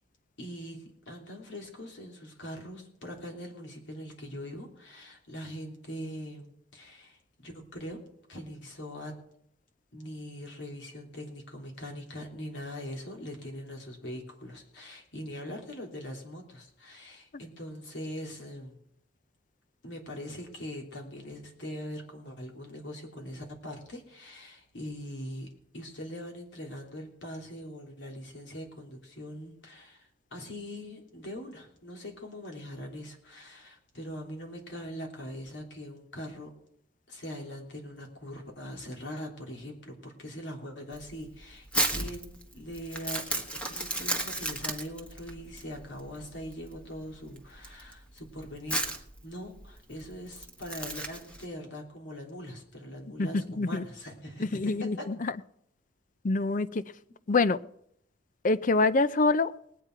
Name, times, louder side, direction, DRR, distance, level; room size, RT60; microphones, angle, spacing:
voice 1, 0.4-8.0 8.3-9.1 9.9-18.8 19.8-36.5 37.1-55.1, equal, 80° left, 1 dB, 3.2 m, -42 dB
Crumpling crinkling, 40.9-51.4, right 1 dB, 5° left, 1.3 m, -34 dB
voice 2, 53.2-53.9 54.4-55.3 56.2-56.8 57.3-57.6 58.4-59.5, left 3 dB, 45° left, 15 dB, 0.5 m, -26 dB
19.5 x 9.1 x 4.6 m, 0.71 s
head